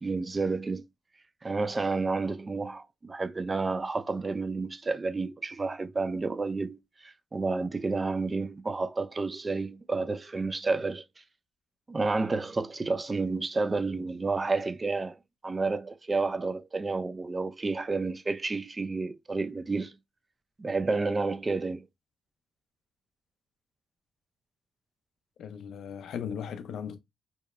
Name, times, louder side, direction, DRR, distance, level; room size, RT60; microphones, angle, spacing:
voice 1, 0.0-0.8 1.4-11.2 11.9-20.0 20.6-21.8, right 3 dB, 25° right, 0.3 m, -30 dB
voice 2, 25.4-27.0, left 7 dB, 70° left, 0.4 m, -37 dB
2.7 x 2.0 x 2.3 m
cardioid pair, 90°, 0 cm